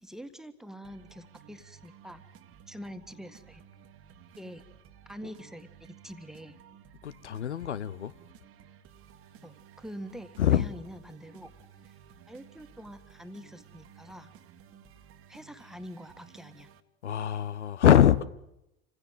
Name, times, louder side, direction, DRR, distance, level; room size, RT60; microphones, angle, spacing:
voice 1, 0.0-2.2 2.7-3.6 4.4-4.6 5.0-6.6 9.4-11.5 11.8-11.9 12.3-14.3 15.3-16.7, equal, ahead, 1.7 m, -45 dB
sound 1, 0.8-16.8, right 9 dB, 40° right, 1.6 m, -55 dB
voice 2, 7.0-8.1 10.4-10.7 17.0-18.2, left 10 dB, 80° left, 0.8 m, -23 dB
27.0 x 16.0 x 9.3 m
figure-of-eight pair, 75°, 34 cm